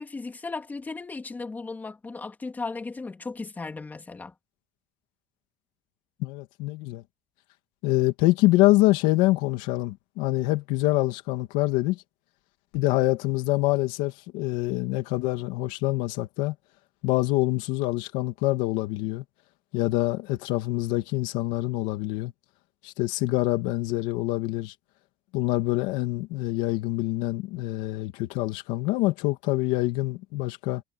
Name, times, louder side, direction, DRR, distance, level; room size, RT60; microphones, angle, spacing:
voice 1, 0.0-4.3, left 3 dB, 15° left, 3.3 m, -36 dB
voice 2, 6.2-7.0 7.8-12.0 12.7-16.5 17.0-19.2 19.7-22.3 22.8-24.7 25.3-30.8, left 19 dB, 75° left, 2.7 m, -25 dB
cardioid pair, 160°, 13 cm